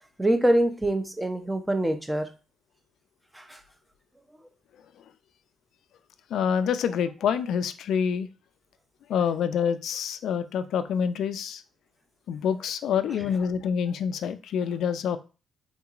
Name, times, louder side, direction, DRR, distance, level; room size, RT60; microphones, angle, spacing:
voice 1, 0.2-2.3 3.3-3.6, right 1 dB, 10° right, 7 dB, 0.6 m, -24 dB
voice 2, 6.3-8.3 9.1-11.6 12.3-15.2, left 7 dB, 75° left, 11 dB, 0.3 m, -27 dB
3.7 x 2.8 x 2.4 m, 0.33 s
cardioid pair, 90°, 0 cm